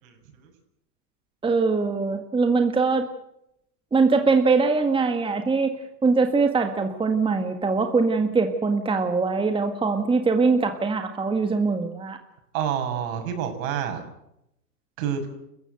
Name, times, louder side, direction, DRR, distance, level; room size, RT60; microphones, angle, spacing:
voice 1, 0.0-0.5 12.5-14.0 15.0-15.3, right 8 dB, 55° right, 7 dB, 6.8 m, -28 dB
voice 2, 1.4-3.1 3.9-5.7 6.0-12.2, right 4 dB, 10° right, 6 dB, 1.7 m, -22 dB
29.0 x 15.0 x 7.9 m, 0.81 s
hypercardioid pair, 125°, 46 cm